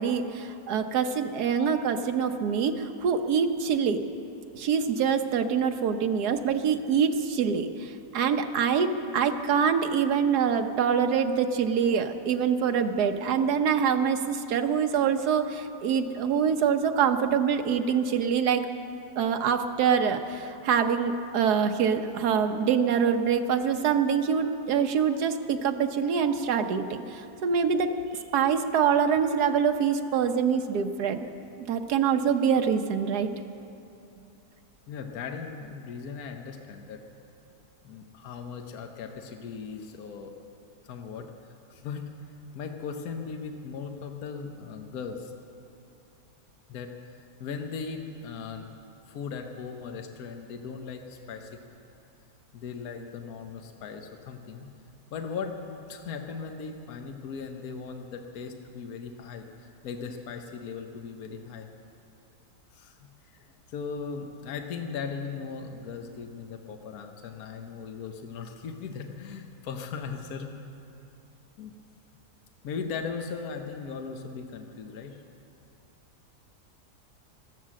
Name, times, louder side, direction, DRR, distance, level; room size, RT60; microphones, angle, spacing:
voice 1, 0.0-4.0 4.5-18.7 19.2-27.9 28.3-31.3 31.7-33.3, right 7 dB, 75° right, 7 dB, 1.4 m, -25 dB
voice 2, 34.9-37.0 37.8-40.3 40.8-42.0 42.5-45.3 46.7-48.7 49.1-51.6 52.5-54.7 55.1-61.7 62.7-63.0 63.2-70.5 71.6-71.7 72.6-75.2, left 5 dB, 65° left, 4 dB, 1.3 m, -38 dB
14.5 x 12.5 x 7.5 m, 2.8 s
omnidirectional pair, 1.8 m